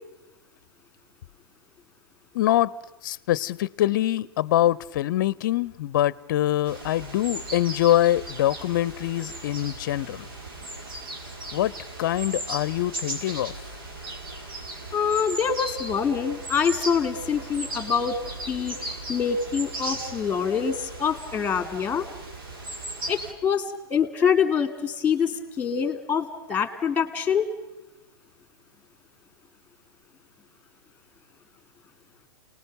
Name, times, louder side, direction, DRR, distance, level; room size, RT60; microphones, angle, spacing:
voice 1, 2.3-2.7 3.0-10.3 11.5-11.7 12.0-13.5, left 13 dB, 55° left, 0.7 m, -24 dB
sound 1, 6.7-23.3, right 2 dB, 70° right, 5.3 m, -37 dB
voice 2, 14.9-18.2 18.5-22.1 23.1-27.5, left 7 dB, 10° left, 2.4 m, -25 dB
29.0 x 19.5 x 6.7 m
hypercardioid pair, 125°, 12 cm